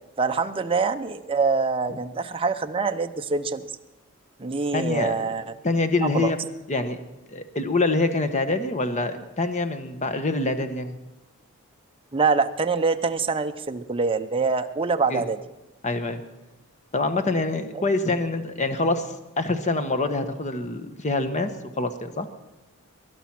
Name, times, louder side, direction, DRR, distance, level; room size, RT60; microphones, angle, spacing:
voice 1, 0.2-3.6 4.4-5.4 6.0-6.3 12.1-15.4, right 4 dB, 25° right, 7 dB, 0.7 m, -25 dB
voice 2, 4.7-5.2 5.6-6.4 6.7-7.0 7.3-11.0 15.1-15.2 15.8-16.2 16.9-21.5 21.8-22.3, left 2 dB, 35° left, 9 dB, 1.1 m, -25 dB
20.5 x 11.5 x 6.0 m, 1.0 s
head